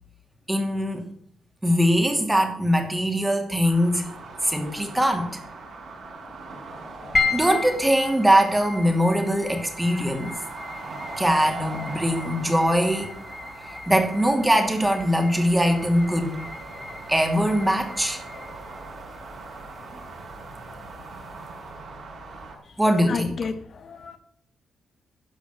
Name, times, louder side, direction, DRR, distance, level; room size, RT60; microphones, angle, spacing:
voice 1, 0.5-1.0 1.6-4.0 4.4-5.4 7.3-10.4 11.2-13.1 13.9-16.3 17.1-18.2 19.9-20.0 22.8-23.4, equal, 10° right, 5 dB, 2.8 m, -22 dB
sound 1, 3.6-22.6, right 3 dB, 60° right, 5.2 m, -41 dB
sound 2, 7.1-21.6, left 4 dB, 25° left, 2.6 m, -35 dB
voice 2, 23.1-24.2, left 5 dB, 55° left, 9 dB, 1.0 m, -31 dB
12.5 x 5.0 x 8.8 m, 0.64 s
cardioid pair, 70°, 0 cm